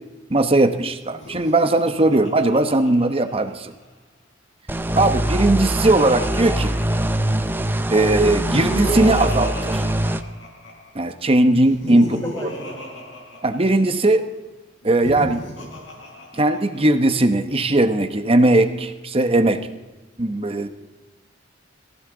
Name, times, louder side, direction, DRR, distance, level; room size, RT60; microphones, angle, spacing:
voice 1, 0.3-3.7 4.9-6.7 7.9-9.8 10.9-12.0 12.4-12.5 13.4-14.3 14.8-15.4 16.4-19.6 20.2-20.7, right 2 dB, 30° right, 9 dB, 1.0 m, -18 dB
Laughter, 1.1-3.8 4.9-7.5 8.2-10.9 11.5-14.0 14.8-17.0, equal, 85° left, 4.7 m, -34 dB
sound 1, 4.7-10.2, right 1 dB, 10° right, 0.6 m, -23 dB
voice 2, 11.9-13.1, equal, 15° left, -6 dB, 3.2 m, -36 dB
22.0 x 15.5 x 3.9 m, 1.1 s
head